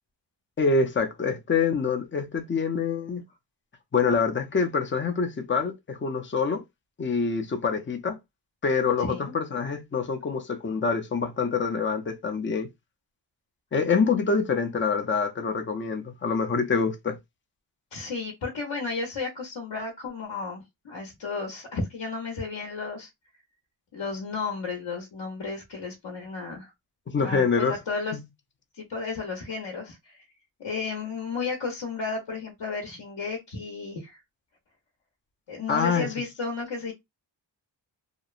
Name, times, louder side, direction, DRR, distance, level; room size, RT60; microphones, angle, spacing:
voice 1, 0.6-3.2 3.9-6.6 7.0-8.2 8.6-12.7 13.7-17.2 27.1-27.7 28.1-28.2 35.7-36.1, left 5 dB, 25° left, 0.5 m, -26 dB
voice 2, 9.0-9.3 17.9-23.1 23.9-26.7 27.2-28.2 28.7-30.2 30.6-34.2 35.5-36.9, left 4 dB, 65° left, 0.9 m, -33 dB
2.9 x 2.1 x 2.4 m
wide cardioid pair, 95°, 46 cm